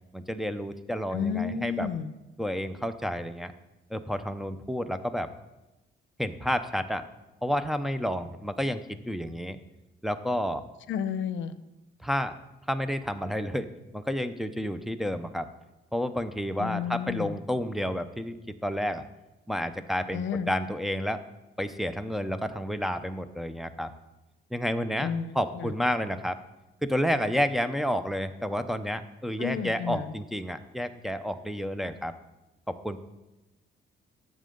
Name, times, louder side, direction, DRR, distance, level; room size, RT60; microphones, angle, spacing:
voice 1, 0.1-1.9 2.4-3.5 3.9-5.3 6.2-7.0 7.4-9.6 10.0-10.6 12.0-12.3 12.7-13.7 13.9-15.5 15.9-18.3 18.6-19.1 19.5-21.2 21.6-23.9 24.5-26.4 26.8-32.1 32.7-33.0, equal, ahead, 7 dB, 0.7 m, -30 dB
voice 2, 1.1-2.1 10.9-11.6 16.6-17.4 20.1-20.5 25.0-25.7 29.4-30.1, left 7 dB, 70° left, 13 dB, 0.7 m, -32 dB
12.5 x 7.7 x 3.8 m, 1.0 s
cardioid pair, 90°, 20 cm